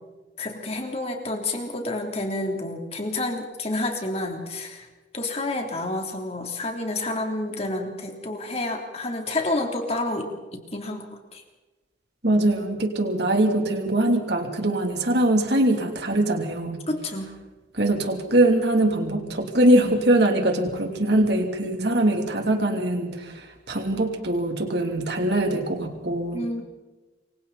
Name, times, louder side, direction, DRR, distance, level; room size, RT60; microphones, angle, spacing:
voice 1, 0.4-4.9 5.1-11.4 16.9-17.3 21.6-21.7 26.3-26.6, left 2 dB, 30° left, 2 dB, 3.3 m, -29 dB
voice 2, 12.2-16.8 17.7-26.4, right 1 dB, 55° right, 3 dB, 3.0 m, -22 dB
28.0 x 24.0 x 4.2 m, 1.2 s
head